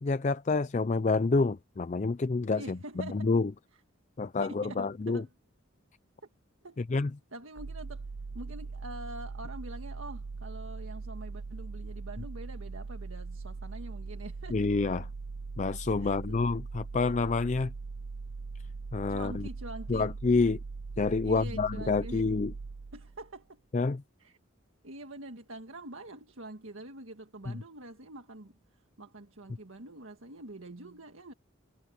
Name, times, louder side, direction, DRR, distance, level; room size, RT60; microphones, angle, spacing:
voice 1, 0.0-3.5 4.2-5.2 6.8-7.1 14.5-15.0 15.6-17.7 18.9-19.5 19.9-20.6 21.0-22.5 23.7-24.0, left 3 dB, 35° left, 0.4 m, -28 dB
voice 2, 2.5-3.3 4.4-5.3 6.6-6.8 7.3-8.0 8.3-14.8 16.0-16.4 19.1-20.1 21.2-22.2 22.9-23.6 24.2-24.4 24.8-31.3, right 1 dB, 80° right, 1.7 m, -45 dB
sound 1, 7.6-23.3, right 4 dB, 60° right, 0.5 m, -40 dB
head